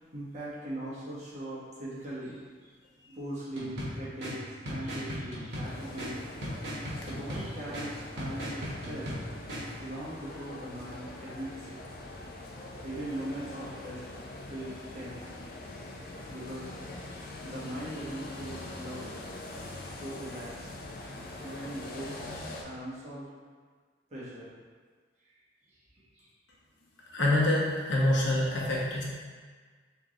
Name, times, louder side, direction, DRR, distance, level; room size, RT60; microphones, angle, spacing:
voice 1, 0.1-2.7 3.1-6.2 7.0-9.1 9.8-11.8 12.3-12.4 12.8-14.0 14.5-15.3 16.3-16.8 17.1-19.1 19.6-20.7 21.4-22.2 22.6-23.3 24.1-24.5 25.2-25.4 25.9-26.3, right 1 dB, 40° right, -9 dB, 1.2 m, -40 dB
sound 1, 3.5-9.6, equal, 75° right, 1.2 m, -38 dB
sound 2, 5.6-22.6, left 2 dB, 55° left, 0.5 m, -43 dB
voice 2, 27.1-29.0, left 1 dB, 85° left, -4 dB, 0.9 m, -26 dB
3.5 x 3.1 x 3.8 m, 1.5 s
head